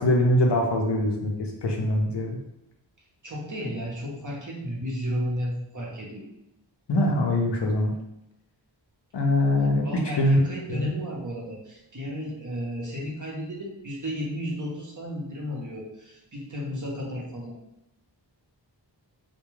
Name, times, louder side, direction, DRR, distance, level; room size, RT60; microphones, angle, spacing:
voice 1, 0.0-2.4 6.9-7.9 9.1-9.8 10.2-10.4 10.7-10.9, left 1 dB, 65° left, 1 dB, 0.6 m, -23 dB
voice 2, 3.2-6.2 9.8-17.5, equal, 40° right, -3 dB, 0.8 m, -33 dB
2.2 x 2.2 x 3.1 m, 0.83 s
wide cardioid pair, 45°, 45 cm